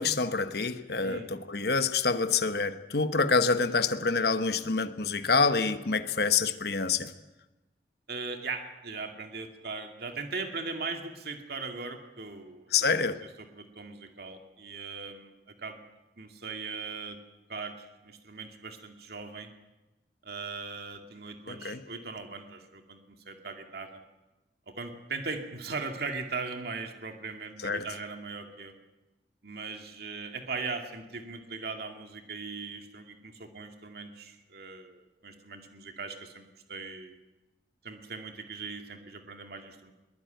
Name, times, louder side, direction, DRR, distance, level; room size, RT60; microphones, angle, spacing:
voice 1, 0.0-7.1 12.7-13.2 21.5-21.8 27.6-27.9, left 4 dB, 65° left, 9 dB, 1.2 m, -27 dB
voice 2, 8.1-12.9 13.4-15.3 15.6-15.8 16.2-17.2 17.5-19.5 20.2-23.0 23.3-24.0 24.7-28.7 29.4-37.2 37.8-39.9, right 4 dB, 60° right, 5 dB, 2.3 m, -39 dB
22.0 x 19.0 x 9.2 m, 1.1 s
head